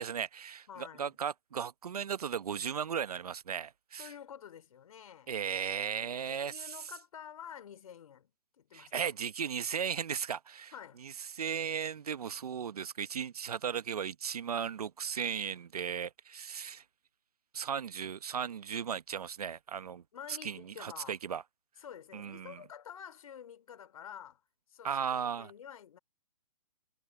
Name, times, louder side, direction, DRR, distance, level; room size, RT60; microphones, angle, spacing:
voice 1, 0.0-4.1 5.3-6.7 8.7-10.7 11.0-16.8 17.5-20.0 20.3-21.4 22.1-22.6 24.8-25.5, right 7 dB, 75° right, 1.0 m, -36 dB
voice 2, 0.7-1.1 4.0-5.3 6.0-8.3 8.6-9.1 10.7-11.0 20.1-21.2 21.8-24.4 24.7-26.0, left 9 dB, 65° left, 3.3 m, -49 dB
hypercardioid pair, 140°, 19 cm